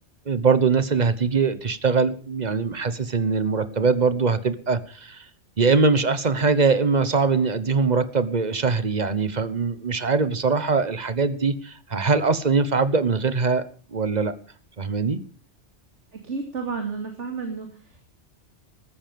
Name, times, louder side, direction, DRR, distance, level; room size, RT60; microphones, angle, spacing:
voice 1, 0.3-5.2 5.6-13.6 13.9-14.3 14.8-15.2, right 4 dB, 40° right, 13 dB, 1.2 m, -22 dB
voice 2, 16.2-18.1, right 4 dB, 80° right, 3 dB, 3.0 m, -32 dB
14.5 x 13.5 x 5.2 m, 0.43 s
omnidirectional pair, 1.2 m